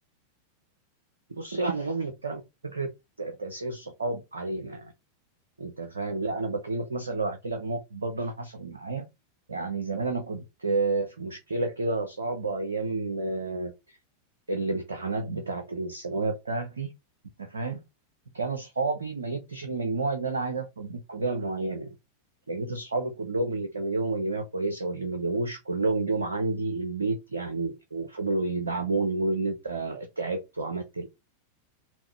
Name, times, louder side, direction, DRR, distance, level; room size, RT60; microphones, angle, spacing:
voice 1, 1.3-2.9 3.2-4.9 5.6-9.1 9.5-13.7 14.5-16.9 17.4-17.8 18.3-21.9 22.5-31.1, right 3 dB, 75° right, 0.6 m, -30 dB
3.6 x 2.5 x 3.3 m
figure-of-eight pair, 90°, 0 cm